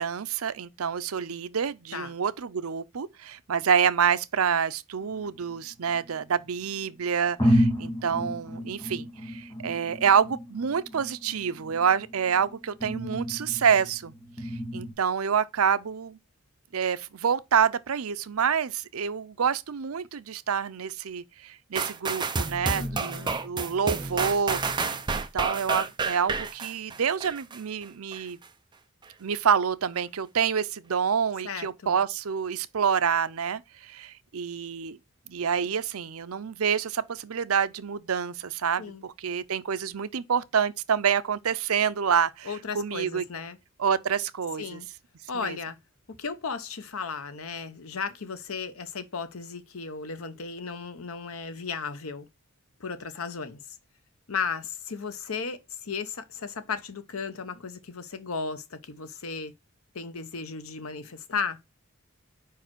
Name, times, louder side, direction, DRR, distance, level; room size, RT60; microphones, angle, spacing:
voice 1, 0.0-14.1 14.4-16.2 16.7-28.4 29.2-35.0 35.3-43.2 43.8-44.8 45.3-45.6, right 7 dB, 85° right, 0.6 m, -27 dB
sound 1, 5.0-6.3 6.9-7.0 7.4-14.9, equal, 20° left, 1.8 m, -31 dB
sound 2, 21.8-27.6 28.1-28.2, right 4 dB, 20° right, 0.6 m, -30 dB
voice 2, 22.7-23.4 31.4-32.0 38.8-39.0 42.4-43.6 44.6-44.9 45.3-45.8 46.1-52.3 52.8-53.6 54.3-59.5 59.9-61.6, left 5 dB, 80° left, 0.9 m, -35 dB
5.0 x 4.6 x 6.1 m
head